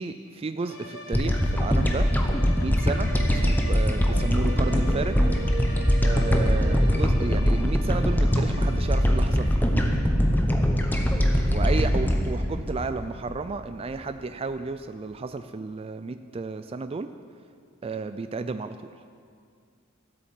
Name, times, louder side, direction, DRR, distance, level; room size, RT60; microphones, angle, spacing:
voice 1, 0.0-2.1 2.6-5.2 6.0-9.7 11.5-17.1 17.8-18.8, right 4 dB, 25° right, 10 dB, 0.3 m, -32 dB
sound 1, 0.6-9.8, left 2 dB, 85° left, 2.3 m, -44 dB
sound 2, 0.8-2.3 2.7-7.0, right 4 dB, 50° right, 1.6 m, -40 dB
sound 3, 1.1-13.6, equal, 10° left, 0.9 m, -22 dB
13.5 x 8.4 x 7.5 m, 2.2 s
head